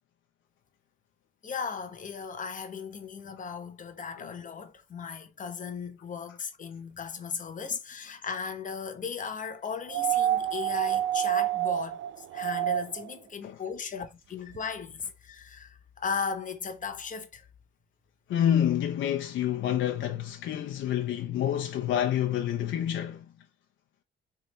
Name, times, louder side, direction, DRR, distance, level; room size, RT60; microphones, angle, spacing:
voice 1, 1.4-17.5, left 6 dB, 40° left, 0.9 m, -37 dB
sound 1, 9.9-13.1 14.5-14.6, right 12 dB, 70° right, 0.5 m, -28 dB
voice 2, 18.3-23.3, left 10 dB, 75° left, 0.6 m, -28 dB
3.3 x 2.6 x 4.0 m
cardioid pair, 90°, 20 cm